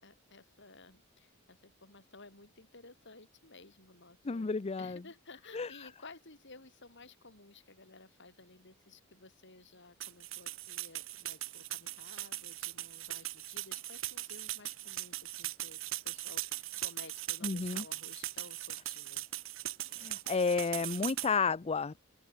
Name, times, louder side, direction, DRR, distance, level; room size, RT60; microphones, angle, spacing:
voice 1, 0.0-4.5 4.8-19.3, left 3 dB, 60° left, 6.8 m, -55 dB
voice 2, 4.2-5.0 5.5-5.9 17.4-17.8 19.9-22.0, left 4 dB, 30° left, 0.5 m, -32 dB
sound 1, 10.0-21.3, right 15 dB, 70° right, 2.0 m, -40 dB
open air
head